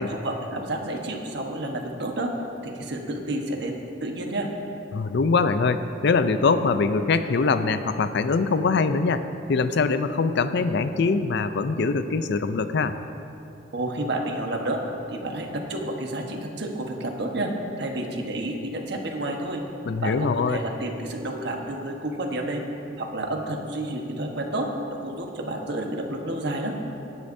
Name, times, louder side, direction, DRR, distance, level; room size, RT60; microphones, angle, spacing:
voice 1, 0.1-2.3 2.6-3.7 4.0-4.5 13.7-14.8 15.1-17.5 17.8-19.6 20.0-22.6 23.0-24.7 25.0-26.7, right 1 dB, 65° right, 2 dB, 1.3 m, -30 dB
voice 2, 4.9-12.9 19.9-20.6, left 4 dB, 65° left, 11 dB, 0.5 m, -23 dB
17.5 x 10.0 x 2.7 m, 2.8 s
head